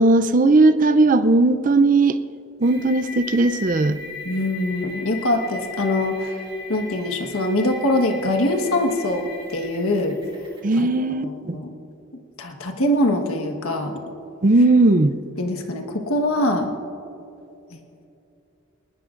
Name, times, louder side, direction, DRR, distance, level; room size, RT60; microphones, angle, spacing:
voice 1, 0.0-2.2 2.6-4.0 10.6-11.6 14.4-15.2, right 2 dB, 40° right, 11 dB, 0.5 m, -17 dB
sound 1, 2.6-10.6, left 3 dB, 20° right, 2.4 m, -38 dB
voice 2, 4.2-10.2 10.7-11.7 12.4-14.0 15.4-16.7 17.7-17.8, left 1 dB, 80° left, 4 dB, 1.4 m, -23 dB
22.0 x 19.5 x 2.6 m, 2.8 s
head